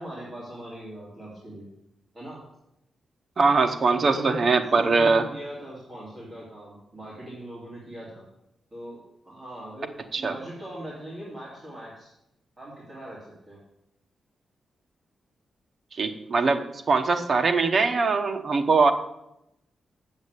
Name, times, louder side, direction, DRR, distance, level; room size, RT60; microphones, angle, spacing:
voice 1, 0.0-1.7 2.1-2.4 4.0-8.3 8.7-9.0 9.2-9.9 10.2-12.1 12.6-13.6, right 1 dB, 15° right, -8 dB, 2.7 m, -40 dB
voice 2, 3.4-5.2 10.1-10.3 15.9-16.6 16.9-18.9, right 4 dB, 35° right, 5 dB, 0.8 m, -21 dB
7.4 x 7.2 x 8.1 m, 0.84 s
wide cardioid pair, 175°, 0 cm